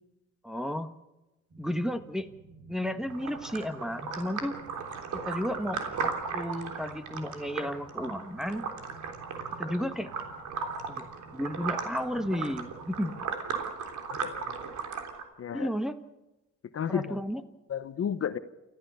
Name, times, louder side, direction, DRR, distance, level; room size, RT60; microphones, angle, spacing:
voice 1, 0.4-0.9 1.6-2.3 2.7-4.5 5.2-8.6 9.6-10.1 10.9-11.0 11.3-13.2 15.5-15.9 16.9-17.4, equal, ahead, 6 dB, 1.5 m, -33 dB
sound 1, 1.5-13.2, right 3 dB, 50° right, 7.5 m, -52 dB
sound 2, 3.1-15.2, right 5 dB, 75° right, 3.5 m, -36 dB
voice 2, 14.1-14.6 15.4-15.7 16.7-17.2 17.7-18.4, left 8 dB, 50° left, 12 dB, 1.1 m, -32 dB
29.0 x 14.0 x 7.1 m, 1.0 s
cardioid pair, 90°, 30 cm